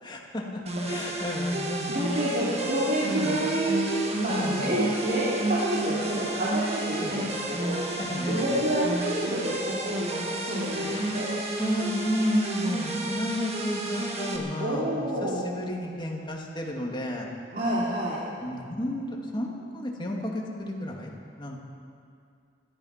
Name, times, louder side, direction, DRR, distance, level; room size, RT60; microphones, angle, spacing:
voice 1, 0.0-2.2 3.1-3.4 4.3-4.7 7.0-7.1 8.0-8.6 10.7-11.2 11.6-17.3 18.4-21.6, left 1 dB, 25° left, -1 dB, 2.2 m, -32 dB
sound 1, 0.7-14.4, right 1 dB, 35° right, 1.9 m, -31 dB
voice 2, 1.9-8.0 8.3-11.3 14.6-15.4 17.5-18.2, right 1 dB, 50° right, -8 dB, 2.7 m, -29 dB
17.0 x 14.0 x 5.8 m, 2.4 s
head